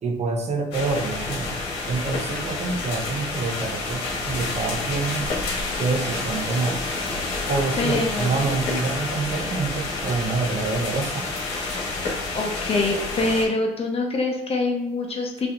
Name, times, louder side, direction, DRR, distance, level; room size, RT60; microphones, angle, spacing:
voice 1, 0.0-1.6 1.9-5.2 5.8-6.8 7.5-11.3, right 4 dB, 40° right, 3 dB, 0.8 m, -27 dB
sound 1, 0.7-13.4, left 3 dB, 85° left, 1.5 m, -29 dB
voice 2, 7.8-8.5 11.6-11.9 12.3-15.5, left 3 dB, 35° left, 1 dB, 0.9 m, -25 dB
5.5 x 3.1 x 2.6 m, 0.93 s
cardioid pair, 110°, 17 cm